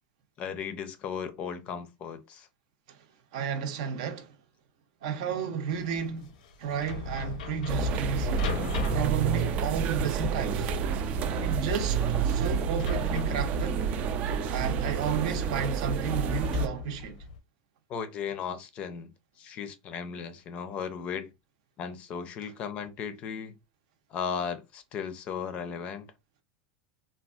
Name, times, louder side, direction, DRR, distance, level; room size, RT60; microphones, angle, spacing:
voice 1, 0.4-2.5 17.9-19.1 19.4-21.3 21.8-23.5 24.1-26.1, left 7 dB, 30° left, 0.5 m, -36 dB
voice 2, 3.3-4.4 5.0-8.4 8.8-10.7 11.4-13.8 14.5-17.2 22.4-22.5, right 7 dB, 65° right, 0.7 m, -33 dB
sound 1, 5.7-17.4, left 4 dB, 90° left, 0.6 m, -39 dB
sound 2, 7.7-16.7, right 5 dB, 35° right, 0.3 m, -29 dB
3.4 x 2.3 x 2.4 m
supercardioid pair, 160°, 4 cm